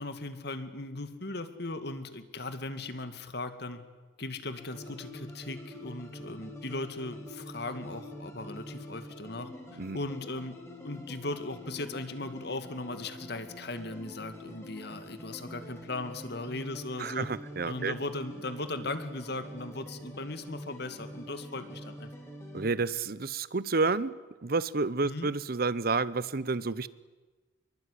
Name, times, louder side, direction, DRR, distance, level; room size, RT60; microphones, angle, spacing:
voice 1, 0.0-3.8 4.2-10.6 10.8-17.3 17.7-22.1 25.0-25.3, left 2 dB, 55° left, 10 dB, 2.3 m, -38 dB
sound 1, 4.6-22.7, equal, 15° left, 4.8 m, -45 dB
voice 2, 17.0-17.9 22.5-26.9, right 4 dB, 50° right, 18 dB, 0.8 m, -30 dB
25.5 x 23.0 x 10.0 m, 1.3 s
head